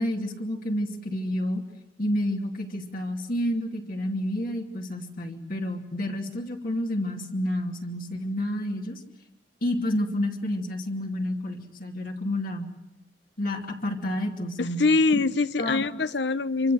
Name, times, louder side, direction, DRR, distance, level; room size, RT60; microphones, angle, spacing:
voice 1, 0.0-1.6 2.0-9.0 9.6-12.7 13.4-14.8 15.1-15.2 15.6-15.8, left 1 dB, 50° left, 2.7 m, -29 dB
voice 2, 14.6-16.7, left 3 dB, 70° left, 0.9 m, -23 dB
26.5 x 24.5 x 7.8 m
head